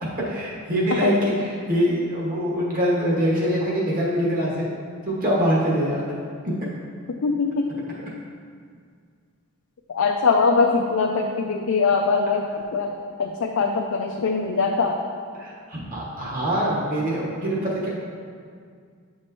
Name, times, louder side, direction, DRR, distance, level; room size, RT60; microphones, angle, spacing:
voice 1, 0.3-4.8 5.0-6.1 15.4-17.9, equal, 40° right, -5 dB, 1.3 m, -24 dB
voice 2, 7.2-7.7 9.9-15.0, left 4 dB, 85° left, 2 dB, 0.4 m, -22 dB
8.3 x 4.6 x 3.0 m, 2.1 s
head